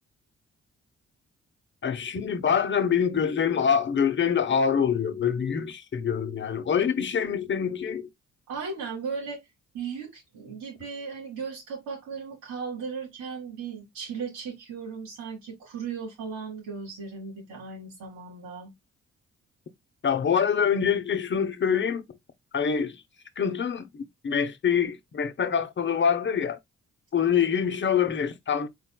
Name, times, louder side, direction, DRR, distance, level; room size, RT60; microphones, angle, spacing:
voice 1, 1.8-8.1 20.0-22.1 22.5-23.0 23.4-26.6 27.1-28.7, left 7 dB, 40° left, 0.8 m, -25 dB
voice 2, 8.5-9.4 9.7-18.7, right 5 dB, 90° right, 2.0 m, -36 dB
4.3 x 4.0 x 2.2 m
supercardioid pair, 55°, 29 cm